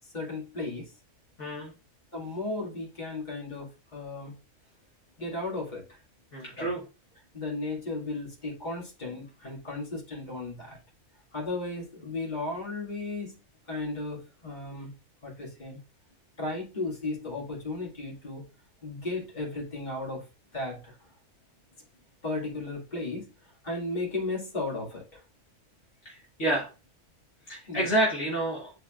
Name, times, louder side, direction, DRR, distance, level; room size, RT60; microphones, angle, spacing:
voice 1, 0.1-0.8 2.1-4.3 5.2-5.8 6.6-6.7 7.3-10.8 11.3-13.3 13.7-14.9 15.2-15.8 16.4-18.4 18.8-20.2 20.5-20.9 22.2-23.3 23.6-25.0 27.7-27.9, left 2 dB, 35° left, -3 dB, 2.3 m, -35 dB
voice 2, 1.4-1.7 6.3-6.8 26.1-26.7 27.5-28.7, right 1 dB, 60° left, -4 dB, 1.8 m, -28 dB
9.6 x 4.1 x 2.5 m, 0.33 s
omnidirectional pair, 1.4 m